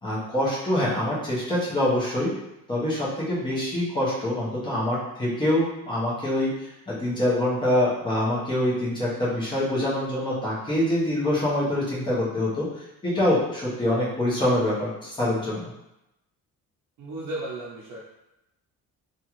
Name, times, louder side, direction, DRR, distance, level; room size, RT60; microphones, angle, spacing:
voice 1, 0.0-2.3 2.7-15.6, left 1 dB, 15° left, -7 dB, 0.9 m, -25 dB
voice 2, 17.0-18.0, right 2 dB, 70° right, -7 dB, 0.7 m, -34 dB
2.7 x 2.4 x 3.0 m, 0.89 s
cardioid pair, 160°, 33 cm